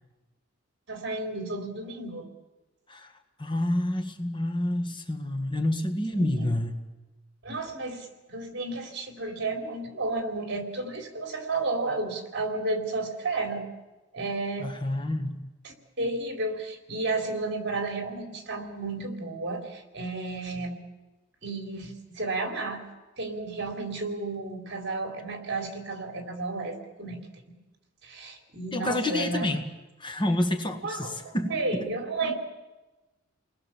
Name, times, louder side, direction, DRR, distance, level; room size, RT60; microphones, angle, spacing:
voice 1, 0.9-2.3 6.1-6.5 7.4-13.7 14.1-14.7 15.6-20.8 21.4-22.8 23.2-27.2 28.0-29.5 30.8-32.4, right 2 dB, 55° right, 4 dB, 3.7 m, -32 dB
voice 2, 2.9-6.8 14.6-15.4 28.7-29.6 30.0-31.6, left 1 dB, 25° left, 3 dB, 1.8 m, -28 dB
29.5 x 20.5 x 7.3 m, 1.1 s
head